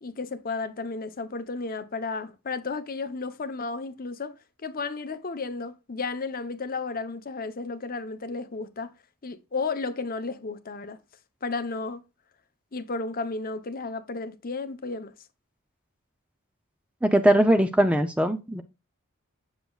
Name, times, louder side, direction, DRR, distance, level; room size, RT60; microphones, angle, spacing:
voice 1, 0.0-8.9 9.2-11.0 11.4-12.0 12.7-15.1, left 4 dB, 40° left, 0.8 m, -33 dB
voice 2, 17.0-18.6, right 1 dB, 5° right, 0.5 m, -20 dB
7.9 x 6.7 x 2.3 m
head